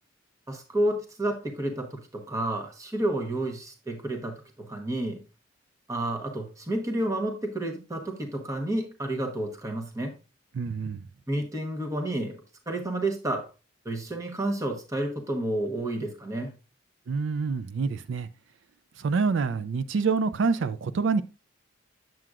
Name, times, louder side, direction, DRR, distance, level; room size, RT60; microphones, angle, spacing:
voice 1, 0.5-5.2 5.9-10.1 11.3-13.5 13.8-16.5, right 1 dB, 15° right, 1.0 m, -30 dB
voice 2, 10.5-11.0 17.1-18.3 19.0-21.2, right 4 dB, 65° right, 0.4 m, -26 dB
7.6 x 7.5 x 2.4 m
head